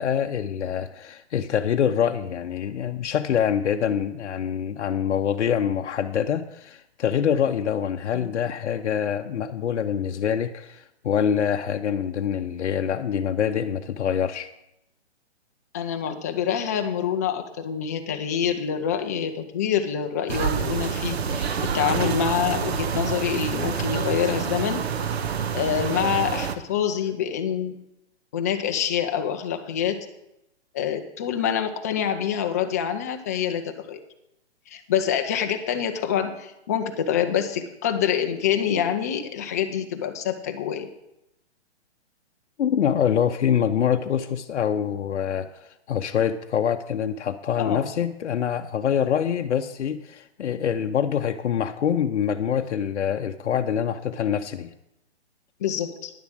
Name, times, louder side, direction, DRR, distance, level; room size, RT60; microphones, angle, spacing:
voice 1, 0.0-14.5 42.6-54.7, left 8 dB, 75° left, 6 dB, 0.7 m, -25 dB
voice 2, 15.7-21.5 21.7-24.8 25.5-27.7 28.3-30.1 30.7-34.0 34.7-40.9 47.6-47.8 55.6-56.1, left 8 dB, 15° left, 6 dB, 0.4 m, -26 dB
sound 1, 20.3-26.5, right 7 dB, 65° right, 1.0 m, -27 dB
10.5 x 7.1 x 6.2 m, 0.84 s
hypercardioid pair, 145°, 35 cm